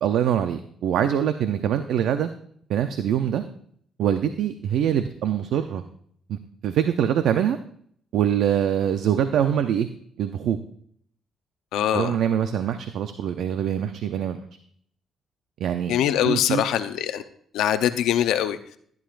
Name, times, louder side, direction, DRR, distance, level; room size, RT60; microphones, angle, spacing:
voice 1, 0.0-2.3 2.7-3.4 4.0-5.8 6.3-7.6 8.1-9.9 10.2-10.6 11.9-14.4 15.6-16.0 16.3-16.6, right 9 dB, 80° right, 9 dB, 0.6 m, -24 dB
voice 2, 11.7-12.1 15.9-17.2 17.5-18.6, left 10 dB, 85° left, 8 dB, 0.7 m, -23 dB
14.5 x 10.5 x 2.5 m, 0.62 s
cardioid pair, 90°, 0 cm